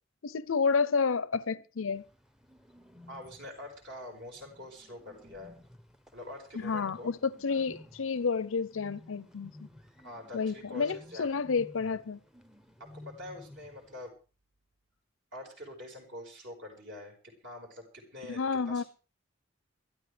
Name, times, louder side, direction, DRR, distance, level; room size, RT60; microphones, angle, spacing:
voice 1, 0.2-2.0 6.5-9.5 10.3-12.2 18.3-18.8, left 5 dB, 75° left, 0.6 m, -30 dB
Bird, 1.9-14.1, left 1 dB, 5° right, 0.7 m, -55 dB
voice 2, 3.1-5.5 6.1-7.1 10.0-11.3 12.8-14.2 15.3-18.9, left 1 dB, 60° right, 5.1 m, -45 dB
22.0 x 13.0 x 3.4 m
head